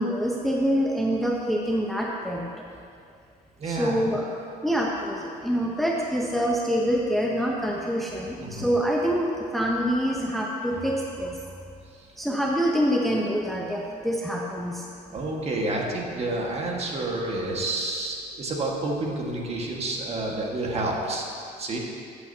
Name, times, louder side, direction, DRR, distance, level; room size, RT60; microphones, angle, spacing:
voice 1, 0.0-2.4 3.7-4.3 4.6-11.4 12.2-14.8, equal, ahead, -2 dB, 0.7 m, -26 dB
voice 2, 3.6-4.0 8.4-8.7 15.1-21.2 21.6-21.8, right 2 dB, 40° right, -1 dB, 1.6 m, -29 dB
13.5 x 8.4 x 2.8 m, 2.4 s
cardioid pair, 110°, 17 cm